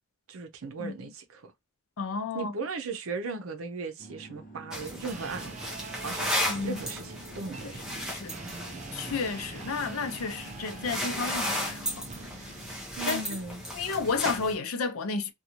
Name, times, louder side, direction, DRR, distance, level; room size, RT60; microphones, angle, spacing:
voice 1, 0.3-1.5 2.3-5.6 6.0-6.3 6.6-7.8 13.0-13.6, right 4 dB, 80° right, 0.6 m, -37 dB
voice 2, 2.0-2.5 6.5-6.8 7.6-7.7 8.0-8.3 8.9-12.1 13.1-13.2 13.7-15.3, left 4 dB, 85° left, 0.6 m, -32 dB
sound 1, 4.0-9.4, right 1 dB, 40° left, 0.7 m, -50 dB
sound 2, 4.7-14.6, equal, 5° right, 0.7 m, -35 dB
sound 3, 5.1-12.9, right 3 dB, 35° right, 0.3 m, -44 dB
2.6 x 2.3 x 2.9 m
head